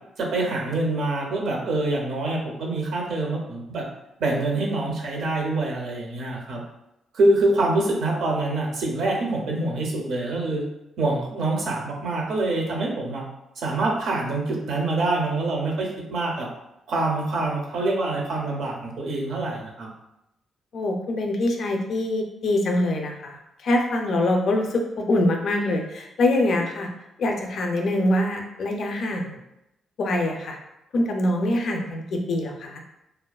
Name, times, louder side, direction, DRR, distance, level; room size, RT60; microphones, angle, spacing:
voice 1, 0.2-3.8 4.2-6.6 7.1-10.6 11.0-13.2 13.6-16.5 16.9-19.9, right 2 dB, 70° right, 0 dB, 0.5 m, -25 dB
voice 2, 20.7-26.9 27.2-29.4 30.0-30.6 30.9-32.8, left 1 dB, 55° left, 2 dB, 0.4 m, -24 dB
2.4 x 2.2 x 2.3 m, 0.88 s
cardioid pair, 140°, 0 cm